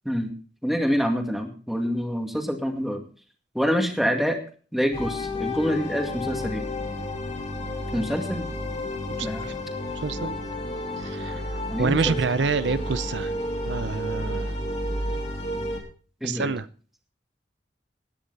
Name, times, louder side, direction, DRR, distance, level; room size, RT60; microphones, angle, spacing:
voice 1, 0.6-3.0 3.5-4.4 4.7-6.6 7.9-8.5 9.2-9.5 11.7-12.2 16.2-16.5, equal, ahead, 4 dB, 2.2 m, -26 dB
sound 1, 4.9-15.8, left 1 dB, 40° left, 3.1 m, -31 dB
voice 2, 9.2-9.5 9.9-10.4 11.0-11.4 11.8-13.3 13.6-14.5 16.2-16.7, right 4 dB, 85° right, 15 dB, 0.6 m, -27 dB
16.0 x 10.0 x 4.1 m, 0.40 s
head